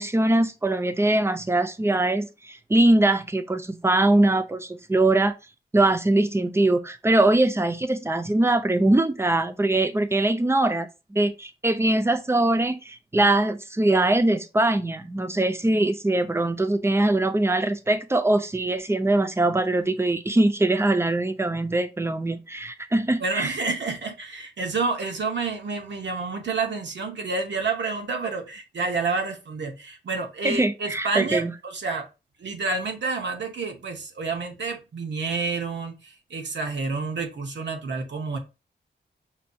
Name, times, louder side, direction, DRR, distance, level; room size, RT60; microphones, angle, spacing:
voice 1, 0.0-5.3 5.7-23.5 30.4-31.5, right 2 dB, 15° right, 0.4 m, -22 dB
voice 2, 23.2-32.1 32.4-38.4, right 4 dB, 85° right, 0.8 m, -29 dB
5.5 x 2.3 x 2.6 m
wide cardioid pair, 115°, 18 cm